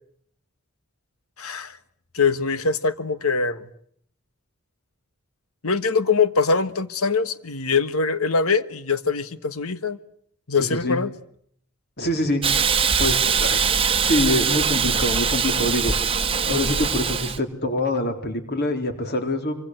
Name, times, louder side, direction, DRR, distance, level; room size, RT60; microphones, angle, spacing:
voice 1, 1.4-1.8 2.1-3.7 5.6-10.0 10.5-11.1, left 4 dB, 80° left, 1.5 m, -23 dB
voice 2, 10.6-11.0 12.0-12.4 13.0-13.7 14.0-15.9 16.4-19.6, left 1 dB, 45° left, 3.9 m, -25 dB
Hiss, 12.4-17.4, right 6 dB, 25° right, 1.2 m, -22 dB
26.0 x 25.5 x 8.0 m
head